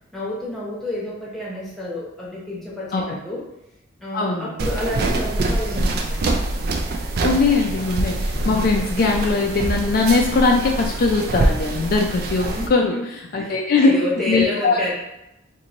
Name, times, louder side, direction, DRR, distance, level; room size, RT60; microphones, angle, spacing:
voice 1, 0.1-3.4 4.0-6.4 12.5-13.0 13.3-14.9, left 1 dB, ahead, -6 dB, 0.9 m, -29 dB
voice 2, 4.1-4.5 7.2-13.9 14.3-14.8, left 3 dB, 50° left, 1 dB, 0.4 m, -20 dB
sound 1, 4.6-12.7, right 2 dB, 55° right, 0.4 m, -24 dB
2.9 x 2.6 x 3.8 m, 0.87 s
head